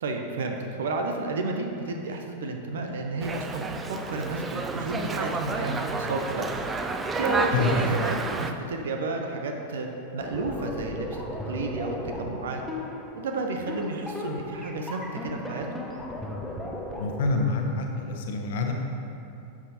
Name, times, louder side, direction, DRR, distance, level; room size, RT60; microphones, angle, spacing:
voice 1, 0.0-6.6 7.1-12.6 13.1-15.7, right 3 dB, 60° right, 3 dB, 0.7 m, -31 dB
Dog, 3.2-8.5, right 3 dB, 15° right, 0.4 m, -30 dB
sound 1, 10.2-17.5, left 1 dB, 5° left, 0.9 m, -36 dB
voice 2, 17.0-18.7, left 4 dB, 55° left, 3 dB, 0.9 m, -27 dB
11.0 x 7.1 x 2.9 m, 2.7 s
figure-of-eight pair, 90°, 0 cm